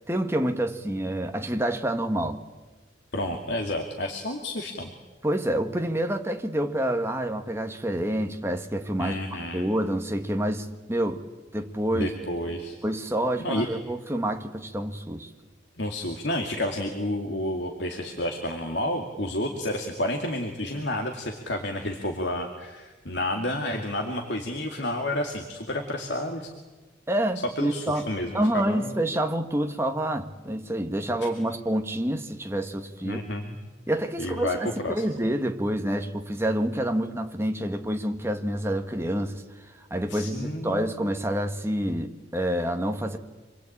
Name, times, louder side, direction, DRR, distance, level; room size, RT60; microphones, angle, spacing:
voice 1, 0.1-2.4 5.2-9.1 9.5-11.2 11.5-12.1 12.8-15.3 27.1-28.1 28.3-33.2 33.9-39.4 39.9-43.2, right 1 dB, 15° right, 1.7 m, -27 dB
voice 2, 3.1-4.9 9.0-9.7 11.9-12.8 13.4-13.7 15.8-26.5 27.6-28.9 31.2-31.3 33.0-33.6 34.2-34.6 34.8-35.1 40.1-40.9, left 1 dB, 65° left, 2.5 m, -30 dB
27.0 x 22.0 x 8.8 m
head